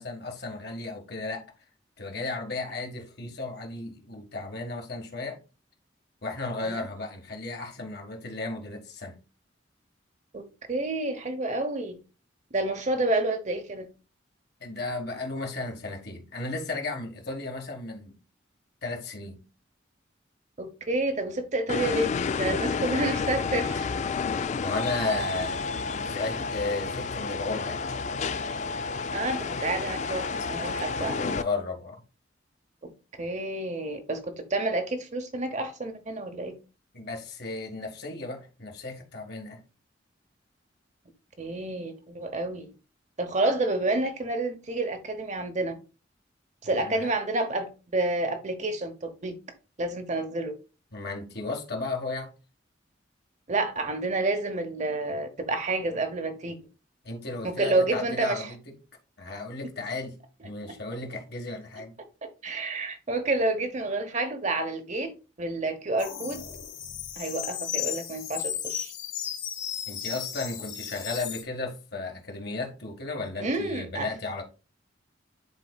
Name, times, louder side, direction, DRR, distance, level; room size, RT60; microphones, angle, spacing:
voice 1, 0.0-1.4 2.0-5.4 6.2-9.2 14.6-18.2 18.8-19.4 24.5-27.8 31.0-32.0 36.9-39.6 46.7-47.1 50.9-52.3 57.0-58.6 59.2-60.2 60.4-61.9 69.9-74.4, left 3 dB, 60° left, 1.6 m, -34 dB
voice 2, 10.3-12.0 12.5-13.9 20.6-23.9 29.1-31.2 32.8-32.9 33.2-36.5 41.4-42.7 43.2-45.7 46.6-49.3 49.8-50.5 53.5-56.6 57.4-58.5 62.2-65.1 65.4-66.4 67.2-68.9 73.4-74.1, right 2 dB, 40° right, 0.9 m, -29 dB
sound 1, 21.7-31.4, left 4 dB, 40° left, 0.3 m, -30 dB
sound 2, 66.0-71.4, left 9 dB, 85° left, 1.9 m, -35 dB
10.5 x 4.1 x 2.3 m
head